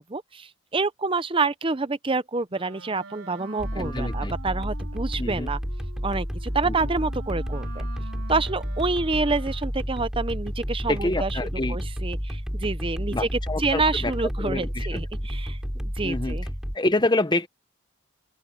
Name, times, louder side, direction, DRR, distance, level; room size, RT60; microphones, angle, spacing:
voice 1, 0.0-5.6 6.0-7.8 8.3-11.4 11.7-16.4, right 3 dB, 25° right, 0.7 m, -28 dB
Wind instrument woodwind instrument, 2.5-9.9, right 3 dB, 80° right, 4.7 m, -45 dB
sound 1, 3.6-16.7, equal, 5° right, 3.0 m, -31 dB
voice 2, 3.7-4.3 5.2-5.5 6.7-6.8 10.9-11.8 13.1-14.1 14.4-15.0 16.0-16.4 16.7-17.5, left 2 dB, 20° left, 0.9 m, -27 dB
open air
head